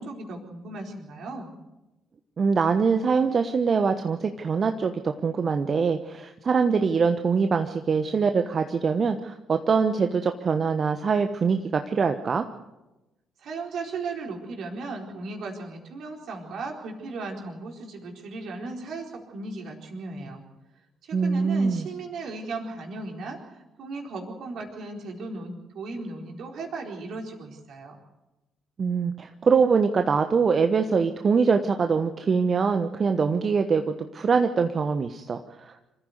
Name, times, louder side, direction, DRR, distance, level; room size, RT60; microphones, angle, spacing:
voice 1, 0.0-1.5 13.4-20.4 21.0-28.0, right 3 dB, 60° right, 1 dB, 4.3 m, -36 dB
voice 2, 2.4-12.4 21.1-21.9 28.8-35.8, right 5 dB, 45° right, 7 dB, 1.2 m, -23 dB
26.5 x 14.5 x 8.1 m, 1.0 s
figure-of-eight pair, 45°, 0 cm